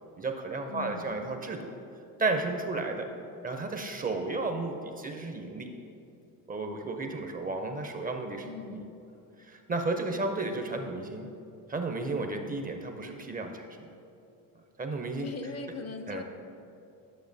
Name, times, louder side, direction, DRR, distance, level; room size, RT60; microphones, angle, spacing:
voice 1, 0.2-1.7 2.2-3.1 3.4-5.7 6.5-8.8 9.4-11.3 11.7-13.9 14.8-15.3 16.1-16.2, right 3 dB, 20° right, 5 dB, 0.4 m, -33 dB
voice 2, 0.7-1.2 8.5-8.9 15.2-16.2, left 4 dB, 35° left, 8 dB, 0.5 m, -40 dB
9.5 x 6.5 x 2.6 m, 2.7 s
supercardioid pair, 85°, 44 cm